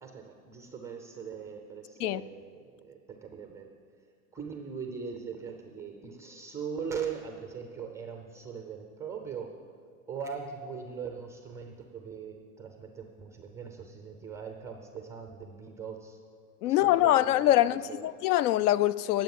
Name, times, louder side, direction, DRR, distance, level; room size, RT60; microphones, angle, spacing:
voice 1, 0.0-3.7 4.3-9.6 10.1-16.2 16.7-18.1, right 6 dB, 5° right, 0.3 m, -40 dB
voice 2, 16.6-19.2, left 14 dB, 75° left, 0.6 m, -24 dB
19.0 x 7.6 x 7.1 m
supercardioid pair, 150°, 46 cm